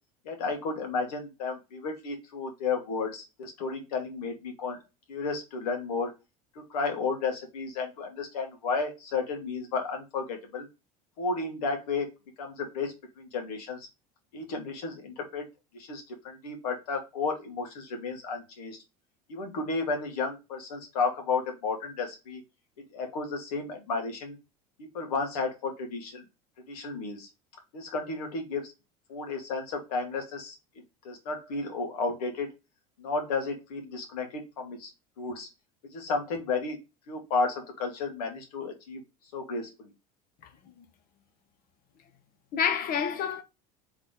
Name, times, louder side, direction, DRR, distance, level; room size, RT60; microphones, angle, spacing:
voice 1, 0.2-4.8 5.1-6.1 6.7-10.7 11.2-12.1 12.4-13.8 14.3-15.4 15.8-18.8 19.3-22.4 22.9-24.3 24.9-26.2 26.7-27.3 27.7-28.7 29.1-30.6 31.0-32.5 33.0-34.9 35.2-35.5 35.9-36.8 37.1-39.0 39.3-39.7, left 4 dB, 80° left, 1.7 m, -32 dB
voice 2, 40.4-40.8 42.5-43.4, left 7 dB, 50° left, 1.1 m, -29 dB
3.9 x 3.5 x 3.7 m
hypercardioid pair, 90°, 19 cm